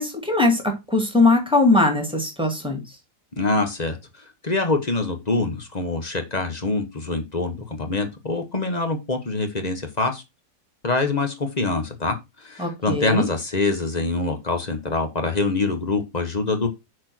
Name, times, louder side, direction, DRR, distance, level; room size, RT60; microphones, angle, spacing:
voice 1, 0.0-2.8 12.6-13.3, left 2 dB, 5° right, 3 dB, 2.1 m, -20 dB
voice 2, 3.3-10.2 10.8-16.7, left 3 dB, 25° left, 6 dB, 1.2 m, -25 dB
6.4 x 4.4 x 6.0 m, 0.23 s
omnidirectional pair, 1.8 m